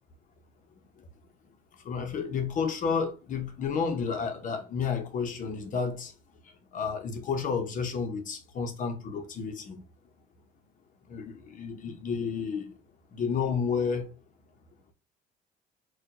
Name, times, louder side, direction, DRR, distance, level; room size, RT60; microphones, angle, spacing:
voice 1, 1.8-6.1 6.7-9.8 11.1-12.7 13.1-14.1, left 6 dB, 50° left, 1.0 m, -31 dB
4.2 x 2.5 x 2.8 m
cardioid pair, 110°, 17 cm